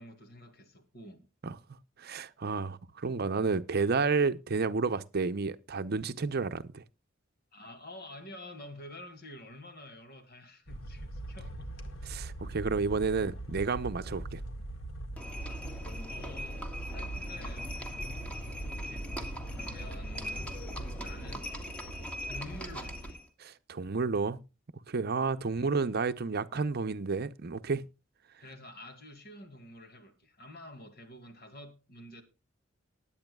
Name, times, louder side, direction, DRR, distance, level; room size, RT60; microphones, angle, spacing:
voice 1, 0.0-1.3 7.5-12.0 15.7-15.8 16.1-17.7 18.4-19.1 19.5-20.6 21.0-21.5 22.2-23.2 25.5-25.7 28.4-32.2, left 1 dB, 55° left, 2.3 m, -49 dB
voice 2, 2.0-6.8 12.0-14.4 23.4-24.4 24.9-27.8, right 4 dB, 55° right, 0.7 m, -31 dB
sound 1, 10.7-23.1, right 1 dB, 85° left, 1.8 m, -41 dB
Livestock farm animals working animals, 15.2-23.3, equal, 5° left, 1.6 m, -42 dB
19.5 x 8.7 x 2.3 m
head